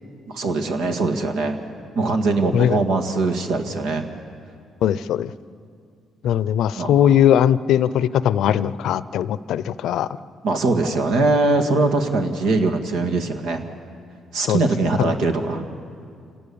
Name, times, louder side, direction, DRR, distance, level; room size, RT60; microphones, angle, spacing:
voice 1, 0.3-1.6 2.0-4.1 6.8-7.1 10.4-13.6 14.3-15.6, right 3 dB, 90° right, 5 dB, 1.9 m, -21 dB
voice 2, 4.8-5.3 6.2-10.1 14.5-15.1, left 10 dB, 80° left, 17 dB, 0.5 m, -20 dB
27.0 x 18.5 x 7.1 m, 2.3 s
cardioid pair, 90°, 0 cm